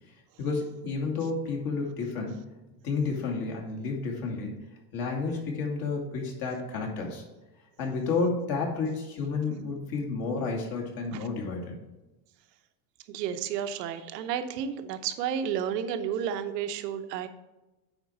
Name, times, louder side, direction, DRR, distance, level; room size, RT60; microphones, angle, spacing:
voice 1, 0.4-2.4 2.8-4.7 4.9-7.2 7.8-11.8, left 4 dB, 50° left, 0 dB, 2.6 m, -31 dB
voice 2, 13.1-17.3, right 8 dB, 85° right, 9 dB, 1.0 m, -31 dB
9.1 x 4.5 x 6.3 m, 1.0 s
supercardioid pair, 130°, 47 cm